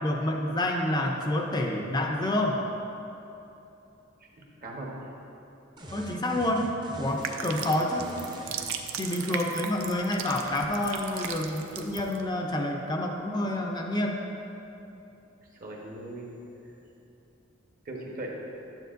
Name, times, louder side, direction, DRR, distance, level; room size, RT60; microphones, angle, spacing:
voice 1, 0.0-2.6 5.9-8.1 9.0-14.3, left 1 dB, 20° left, 1 dB, 0.4 m, -28 dB
voice 2, 4.6-5.1 9.2-9.4 15.5-16.3 17.8-18.3, right 1 dB, 45° right, -2 dB, 1.1 m, -39 dB
sound 1, 5.8-8.6, equal, 20° right, 0.7 m, -42 dB
sound 2, 7.1-12.2, right 7 dB, 75° right, 0.5 m, -37 dB
9.2 x 8.0 x 2.6 m, 2.9 s
head